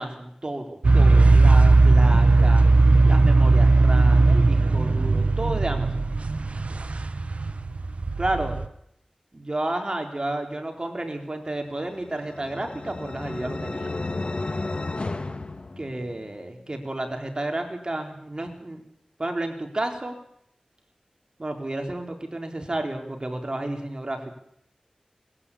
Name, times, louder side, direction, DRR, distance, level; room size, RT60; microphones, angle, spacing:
voice 1, 0.0-2.6 3.1-6.1 8.2-8.6 9.3-13.9 15.8-18.8 19.2-20.2 21.4-24.3, right 1 dB, 40° right, 4 dB, 3.8 m, -31 dB
sound 1, 0.8-8.7, right 3 dB, 70° right, 1.1 m, -18 dB
sound 2, 11.8-16.4, left 2 dB, 55° left, 1.6 m, -33 dB
21.0 x 14.5 x 8.5 m, 0.73 s
wide cardioid pair, 70°, 2 cm